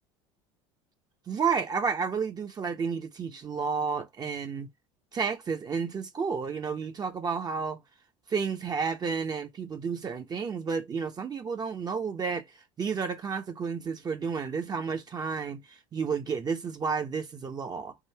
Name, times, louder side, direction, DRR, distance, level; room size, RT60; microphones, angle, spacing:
voice 1, 1.3-4.7 5.1-7.8 8.3-17.9, right 5 dB, 30° right, 0.7 m, -31 dB
3.7 x 2.6 x 4.3 m
supercardioid pair, 90°, 13 cm